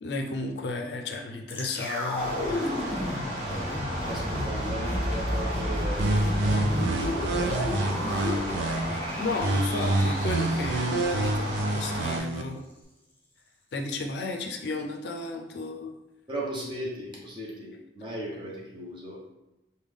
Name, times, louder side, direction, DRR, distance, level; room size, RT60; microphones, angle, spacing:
voice 1, 0.0-2.7 9.2-12.6 13.7-15.9, left 3 dB, 70° left, 3 dB, 0.4 m, -33 dB
sound 1, 1.5-11.6 11.9-12.0, left 1 dB, 10° left, 0.6 m, -32 dB
sound 2, 2.2-12.2, equal, 45° right, 1.2 m, -34 dB
voice 2, 4.0-8.6 16.3-19.2, right 1 dB, 25° right, -4 dB, 0.9 m, -37 dB
sound 3, 6.0-9.0 9.4-12.4, right 2 dB, 80° right, 0.3 m, -27 dB
3.5 x 2.2 x 3.3 m, 0.99 s
head